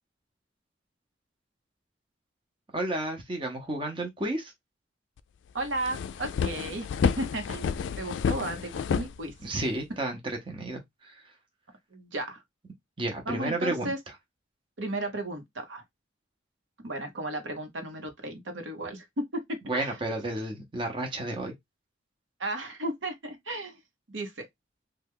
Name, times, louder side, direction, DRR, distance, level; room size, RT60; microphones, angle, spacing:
voice 1, 2.7-4.5 9.4-11.1 13.0-13.9 19.7-21.5, right 2 dB, 25° right, 0.8 m, -32 dB
sound 1, 5.2-5.3 5.6-9.8, left 6 dB, 80° left, 0.3 m, -30 dB
voice 2, 5.5-9.3 11.9-12.4 13.3-14.0 14.8-15.8 16.8-20.0 22.4-23.8 24.1-24.5, right 1 dB, 80° right, 0.9 m, -34 dB
3.3 x 2.3 x 3.5 m
head